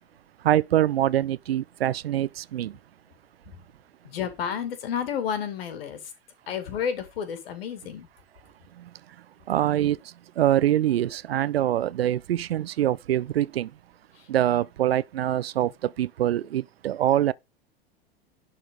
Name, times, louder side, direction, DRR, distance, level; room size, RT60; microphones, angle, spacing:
voice 1, 0.4-2.7 9.5-10.0 10.4-13.7 14.3-15.7 16.0-17.3, right 12 dB, 70° right, 0.6 m, -24 dB
voice 2, 4.0-6.1 6.5-8.1 14.1-14.3 15.6-15.7, left 8 dB, 60° left, 2.4 m, -31 dB
11.0 x 4.3 x 5.5 m
figure-of-eight pair, 85°, 32 cm